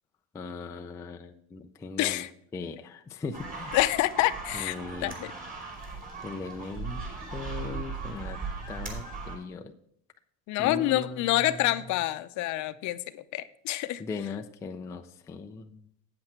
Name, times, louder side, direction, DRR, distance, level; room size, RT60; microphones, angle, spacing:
voice 1, 0.3-2.2 2.5-3.8 4.5-5.2 6.2-7.0 7.3-8.4 8.7-9.7 10.6-12.0 14.0-15.8, left 4 dB, 10° left, 4 dB, 0.3 m, -39 dB
voice 2, 2.0-2.3 3.7-4.8 5.0-5.3 10.5-14.0, left 15 dB, 50° left, 12 dB, 0.6 m, -27 dB
sound 1, 3.3-9.4, right 4 dB, 20° right, 2.7 m, -38 dB
8.6 x 7.9 x 4.4 m, 0.72 s
supercardioid pair, 130°, 38 cm